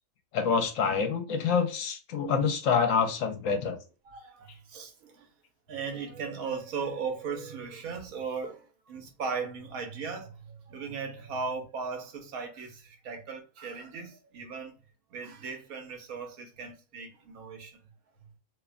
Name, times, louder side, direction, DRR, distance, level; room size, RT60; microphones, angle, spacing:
voice 1, 0.3-3.8, left 6 dB, 70° left, 1.0 m, -27 dB
voice 2, 4.1-5.3 5.7-14.8 15.1-17.8 18.2-18.3, right 5 dB, 85° right, 1.2 m, -37 dB
2.8 x 2.1 x 2.4 m
omnidirectional pair, 1.4 m